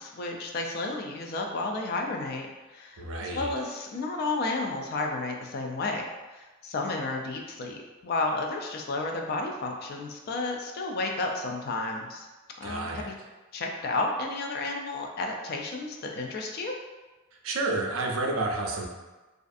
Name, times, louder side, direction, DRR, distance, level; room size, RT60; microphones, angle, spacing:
voice 1, 0.0-2.5 2.7-6.0 6.3-12.3 12.6-13.1 13.5-16.7, left 2 dB, 45° left, 2 dB, 0.3 m, -32 dB
voice 2, 3.0-3.5 12.6-13.1 17.4-18.9, right 2 dB, 70° right, 0 dB, 0.4 m, -30 dB
2.5 x 2.4 x 2.4 m, 1.2 s
head